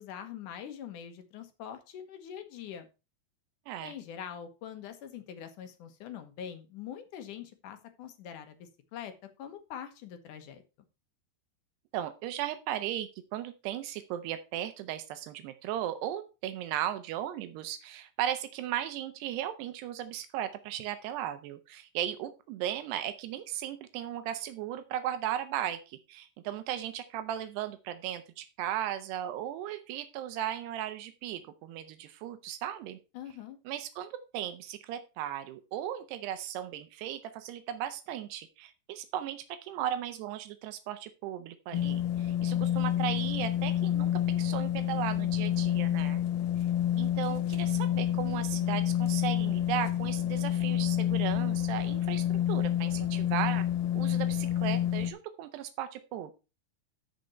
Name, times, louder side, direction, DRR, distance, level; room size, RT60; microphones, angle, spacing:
voice 1, 0.0-2.9 3.8-9.1 9.4-10.6 33.1-33.6, left 9 dB, 65° left, 8 dB, 2.3 m, -43 dB
voice 2, 11.9-33.0 33.7-46.2 47.0-53.7 53.9-56.3, right 11 dB, 85° right, 9 dB, 3.0 m, -36 dB
sound 1, 41.7-55.1, left 11 dB, 80° left, 2.7 m, -29 dB
13.5 x 5.2 x 4.4 m, 0.30 s
omnidirectional pair, 4.7 m